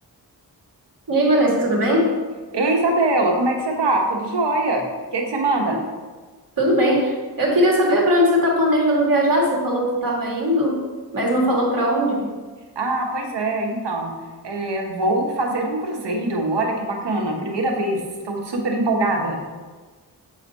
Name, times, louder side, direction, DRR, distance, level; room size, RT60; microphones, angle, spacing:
voice 1, 1.1-2.1 6.6-10.8 11.1-12.3, equal, 55° right, -2 dB, 2.1 m, -19 dB
voice 2, 2.5-4.8 5.1-5.8 12.7-14.1 14.4-19.4, right 2 dB, 85° right, 1 dB, 1.3 m, -22 dB
7.7 x 5.0 x 4.1 m, 1.4 s
wide cardioid pair, 90°, 41 cm